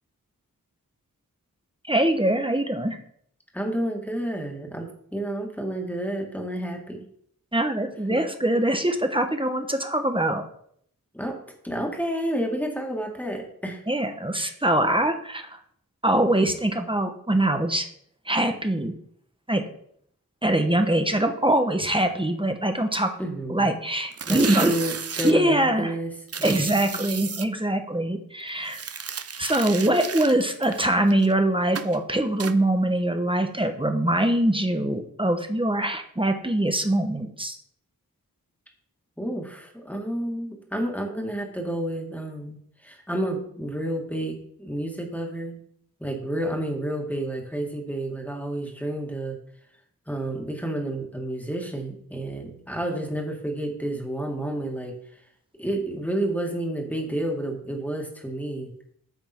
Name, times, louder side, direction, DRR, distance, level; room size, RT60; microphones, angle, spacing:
voice 1, 1.9-3.0 7.5-10.4 13.9-15.6 16.0-17.9 18.2-18.9 19.5-19.6 20.4-23.1 23.5-24.7 25.2-25.9 26.4-28.8 29.4-37.6, right 1 dB, 15° right, 6 dB, 1.1 m, -23 dB
voice 2, 3.5-7.0 8.1-8.2 11.1-11.4 11.6-13.8 23.2-23.7 24.3-26.1 26.4-27.3 39.2-42.6 42.8-45.6 46.0-49.4 50.1-54.9 55.6-58.7, right 1 dB, 5° left, 1 dB, 2.1 m, -30 dB
sound 1, 24.1-25.3 26.3-27.5 28.7-31.3 31.8-32.0 32.4-32.6, right 6 dB, 45° right, 0.6 m, -33 dB
9.3 x 5.3 x 4.5 m, 0.65 s
wide cardioid pair, 50°, 36 cm